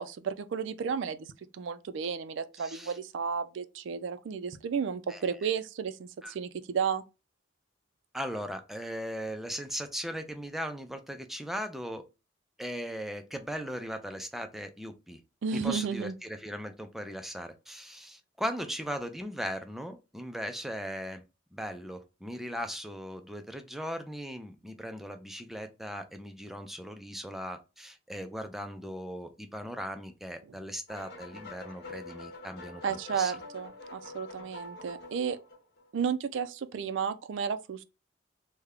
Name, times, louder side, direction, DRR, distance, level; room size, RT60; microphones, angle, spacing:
voice 1, 0.0-7.0 15.4-16.1 32.8-35.4 35.9-37.8, right 6 dB, 75° right, 0.4 m, -33 dB
voice 2, 2.6-3.0 5.1-5.5 6.2-6.4 8.1-12.0 12.6-15.2 15.5-21.2 21.5-33.3, equal, ahead, 0.3 m, -38 dB
sound 1, 30.9-35.9, left 2 dB, 60° left, 0.8 m, -46 dB
3.3 x 2.1 x 3.5 m
head